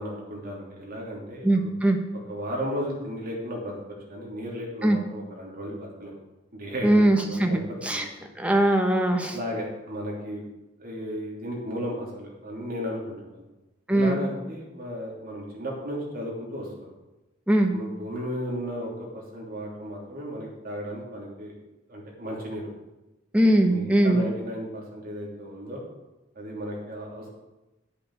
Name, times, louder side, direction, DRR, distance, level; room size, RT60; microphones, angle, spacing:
voice 1, 0.0-1.7 2.3-3.7 4.1-6.1 6.5-7.6 7.9-8.1 9.3-10.4 10.8-13.4 13.9-16.9 17.7-21.5 21.9-22.7 23.7-25.8 26.3-27.3, equal, 50° right, -3 dB, 3.1 m, -34 dB
voice 2, 1.4-2.0 4.8-5.0 6.8-8.1 8.4-9.4 13.9-14.2 17.5-17.7 23.3-24.2, right 1 dB, 5° right, 3 dB, 1.0 m, -21 dB
10.0 x 8.9 x 4.8 m, 1.0 s
head